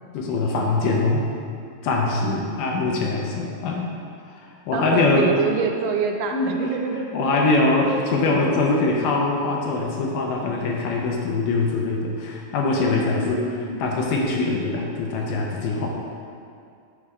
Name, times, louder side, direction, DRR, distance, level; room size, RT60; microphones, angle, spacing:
voice 1, 0.1-1.2 1.8-3.9 4.4-5.3 6.3-6.5 7.1-15.9, left 3 dB, 75° left, -1 dB, 2.1 m, -23 dB
voice 2, 2.2-3.2 4.7-7.1 12.9-13.9, right 5 dB, 85° right, 3 dB, 2.2 m, -28 dB
6.9 x 4.9 x 4.1 m, 2.4 s
omnidirectional pair, 4.1 m